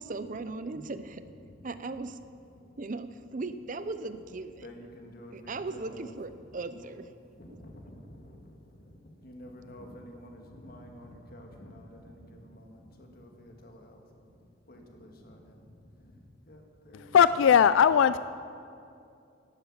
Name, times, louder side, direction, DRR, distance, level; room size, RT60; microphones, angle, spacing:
voice 1, 0.0-1.2 1.6-2.2 2.8-4.6 5.3-7.1, right 3 dB, 40° right, 12 dB, 0.6 m, -37 dB
voice 2, 1.2-1.6 2.6-2.8 4.6-17.2, equal, 50° left, 2 dB, 1.9 m, -50 dB
voice 3, 16.9-18.2, left 7 dB, 75° left, 15 dB, 0.3 m, -20 dB
12.0 x 10.0 x 8.8 m, 2.5 s
head